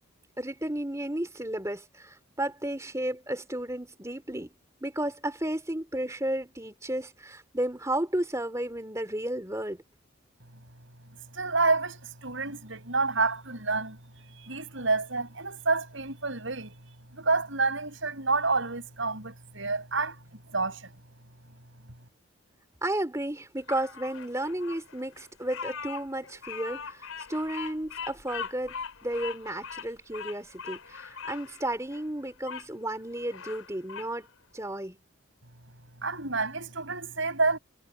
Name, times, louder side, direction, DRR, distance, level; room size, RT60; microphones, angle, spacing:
voice 1, 0.4-4.5 4.8-9.8 22.8-34.3 34.5-35.0, right 1 dB, 15° right, 3.4 m, -33 dB
voice 2, 11.3-14.0 14.3-16.8 17.1-20.2 20.5-20.9 36.0-37.6, right 3 dB, 65° right, 6.8 m, -29 dB
Bird vocalization bird call bird song, 23.7-32.7 33.1-34.1, left 6 dB, 85° left, 5.2 m, -41 dB
head